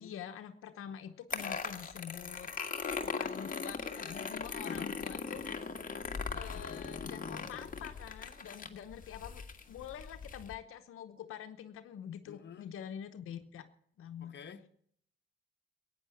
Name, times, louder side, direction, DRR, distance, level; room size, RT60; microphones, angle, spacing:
voice 1, 0.0-2.5 3.0-5.6 6.3-13.7 14.0-14.3, left 9 dB, 90° left, 1.0 m, -46 dB
sound 1, 1.3-10.5, left 5 dB, 40° left, 1.8 m, -39 dB
voice 2, 4.6-4.9 6.3-6.7 12.3-12.7 14.2-14.7, left 7 dB, 60° left, 1.2 m, -49 dB
15.5 x 9.4 x 8.5 m
cardioid pair, 80°, 21 cm